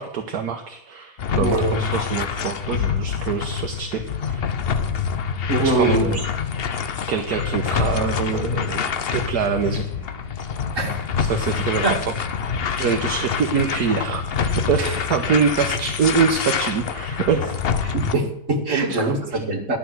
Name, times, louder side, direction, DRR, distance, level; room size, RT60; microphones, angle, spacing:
voice 1, 0.0-4.0 4.3-4.4 5.6-6.2 6.7-9.8 11.2-11.8 12.4-17.6 18.7-19.2, right 6 dB, 65° right, 4 dB, 1.6 m, -25 dB
sound 1, 1.2-18.2, left 6 dB, 50° left, 0.7 m, -26 dB
voice 2, 1.4-2.2 5.5-6.3 10.7-11.0 11.8-12.0 14.8-15.0 17.8-19.8, right 2 dB, 45° right, 1 dB, 2.5 m, -23 dB
sound 2, 7.3-13.3, left 3 dB, 15° left, 3.3 m, -42 dB
11.5 x 7.0 x 7.8 m, 0.79 s
omnidirectional pair, 1.8 m